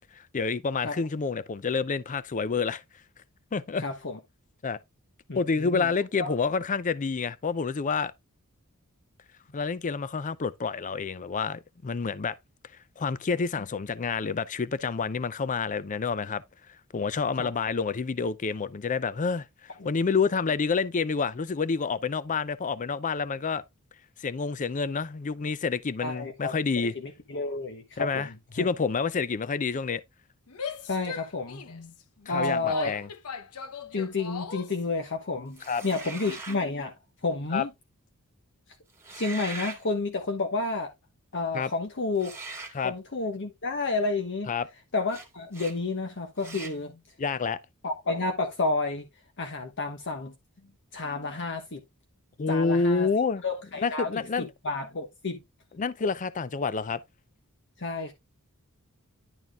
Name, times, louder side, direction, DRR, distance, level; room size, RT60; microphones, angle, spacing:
voice 1, 0.1-2.8 3.5-3.8 4.6-4.8 5.3-8.1 9.5-12.4 13.0-16.4 16.9-23.6 24.2-26.9 28.0-30.0 32.3-33.1 35.7-35.8 37.5-37.7 41.5-41.7 42.7-42.9 44.5-44.7 47.2-47.6 52.4-53.4 53.8-54.5 55.8-57.0, left 5 dB, 35° left, 0.5 m, -28 dB
voice 2, 3.8-4.2 5.3-5.9 6.2-6.3 17.4-17.5 26.0-26.5 26.9-28.2 28.6-28.7 30.8-31.9 32.3-32.9 33.9-36.9 37.2-37.7 39.1-40.9 41.3-42.3 42.8-44.5 44.9-47.0 47.8-49.1 49.4-50.3 50.9-51.8 52.5-53.1 53.4-54.1 54.4-55.4 57.8-58.1, left 3 dB, 55° left, 1.1 m, -30 dB
Female speech woman speaking / Yell, 30.5-34.8, left 6 dB, 80° left, 0.9 m, -39 dB
sound 1, 35.6-36.6 38.9-39.8 42.2-42.8 45.1-45.3 45.5-45.8 46.4-46.8, right 3 dB, 10° right, 1.8 m, -40 dB
10.5 x 4.4 x 3.5 m
head